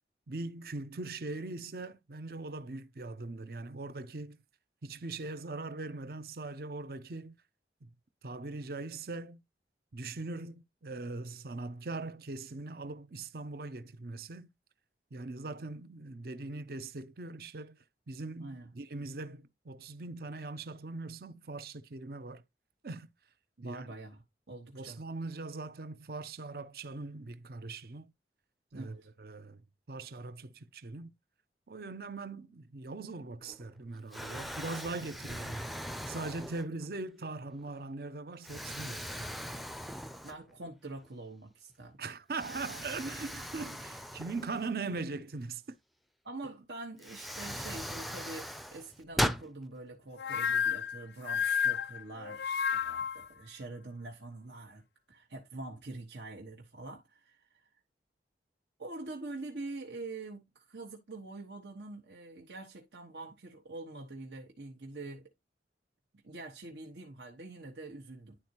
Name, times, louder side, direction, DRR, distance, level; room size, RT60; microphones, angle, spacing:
voice 1, 0.3-4.4 4.8-7.3 7.8-7.9 8.2-9.4 9.9-14.5 15.1-17.8 18.1-22.4 22.8-23.1 23.6-23.9 24.7-28.1 28.7-29.6 29.9-31.1 31.7-35.7 36.1-39.3 42.0-45.6, right 3 dB, 55° right, 0.6 m, -41 dB
voice 2, 18.4-18.7 23.6-24.2 24.5-25.0 28.7-29.1 40.2-42.0 46.2-57.7 58.8-65.3 66.2-68.4, right 2 dB, 80° right, 1.4 m, -45 dB
Explosion, 33.4-33.8 34.1-36.9 37.5-37.7 38.4-40.7 41.0-41.1 42.4-45.0 46.4-46.5 47.0-49.5, equal, ahead, 0.4 m, -39 dB
sound 1, 50.2-53.3, left 7 dB, 75° left, 0.5 m, -31 dB
11.0 x 4.3 x 2.9 m
head